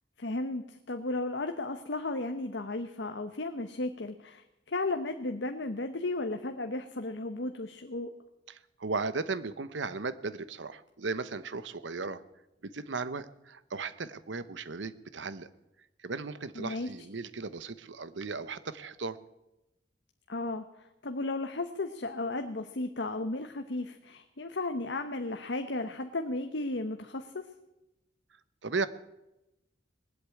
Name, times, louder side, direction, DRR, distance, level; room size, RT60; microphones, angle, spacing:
voice 1, 0.2-8.1 16.6-16.9 20.3-20.6 21.0-27.4, left 2 dB, 70° left, 7 dB, 1.0 m, -34 dB
voice 2, 8.5-12.2 12.6-15.5 16.0-19.2 28.6-28.9, right 4 dB, 85° right, 15 dB, 0.9 m, -36 dB
20.0 x 8.2 x 8.5 m, 0.94 s
head